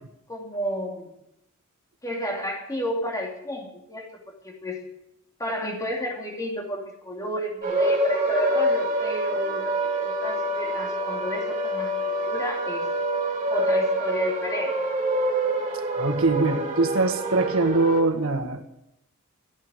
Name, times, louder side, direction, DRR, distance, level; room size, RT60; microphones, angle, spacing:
voice 1, 0.3-1.1 2.0-4.1 4.4-4.8 5.4-12.9 13.5-14.8, equal, 15° left, 0 dB, 2.8 m, -31 dB
sound 1, 7.6-18.0, right 1 dB, 35° right, 3.5 m, -26 dB
voice 2, 15.9-18.6, right 3 dB, 70° right, 5 dB, 1.7 m, -23 dB
14.5 x 9.2 x 9.4 m, 0.82 s
head